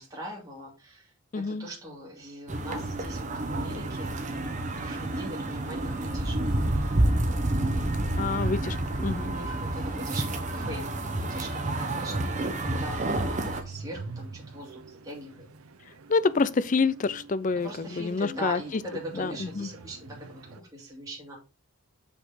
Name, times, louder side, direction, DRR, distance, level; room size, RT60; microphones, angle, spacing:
voice 1, 0.0-7.1 8.2-8.5 9.2-10.8 11.1-15.5 17.6-21.4, right 1 dB, 15° right, 2.3 m, -41 dB
voice 2, 1.3-1.7 8.1-9.4 16.1-18.6 19.1-19.7, left 4 dB, 35° left, 0.4 m, -27 dB
sound 1, 2.5-13.6, right 1 dB, 35° right, 1.0 m, -29 dB
sound 2, 2.5-20.6, right 4 dB, 90° right, 0.7 m, -44 dB
6.5 x 5.4 x 3.9 m
head